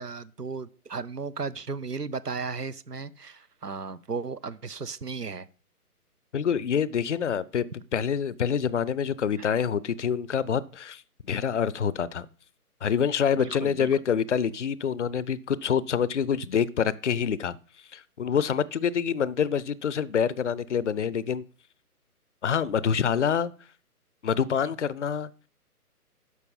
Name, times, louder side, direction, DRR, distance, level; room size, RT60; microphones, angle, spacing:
voice 1, 0.0-5.5 9.4-9.5 13.3-13.9, right 4 dB, 90° right, 0.9 m, -35 dB
voice 2, 6.3-7.7 7.9-12.3 12.8-17.6 17.9-21.4 22.4-23.5 24.2-25.3, left 7 dB, 50° left, 0.6 m, -26 dB
11.0 x 6.6 x 5.3 m
figure-of-eight pair, 140°, 46 cm